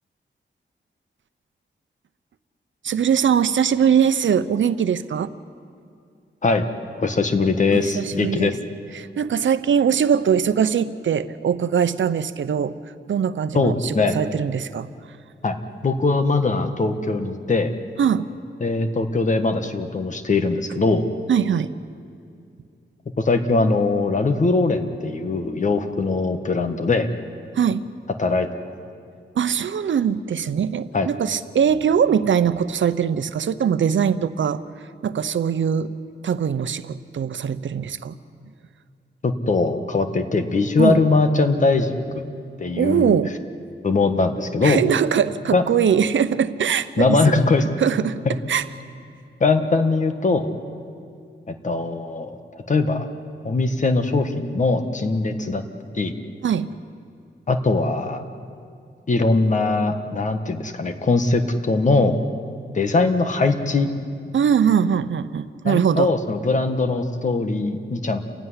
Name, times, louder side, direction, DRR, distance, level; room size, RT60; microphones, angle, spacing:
voice 1, 2.8-5.3 7.7-8.5 8.9-12.8 13.1-14.9 18.0-18.3 21.3-21.7 27.5-27.9 29.4-34.6 35.0-35.9 36.2-38.1 40.8-41.1 42.8-43.3 44.6-47.4 47.8-48.2 48.5-48.7 56.4-56.7 64.3-66.1, right 8 dB, 85° right, 12 dB, 0.8 m, -21 dB
voice 2, 7.0-8.5 13.5-14.2 15.4-15.5 15.8-17.7 18.6-21.0 23.2-27.1 28.2-28.5 30.9-31.1 39.2-42.2 42.6-43.2 43.8-44.8 45.5-45.6 47.0-47.6 49.4-50.5 51.5-52.4 52.7-53.1 53.4-55.6 55.9-56.1 57.5-58.2 59.1-62.2 62.7-63.9 65.6-68.2, left 3 dB, 40° left, 7 dB, 1.6 m, -21 dB
29.0 x 16.0 x 9.8 m, 2.4 s
wide cardioid pair, 165°, 19 cm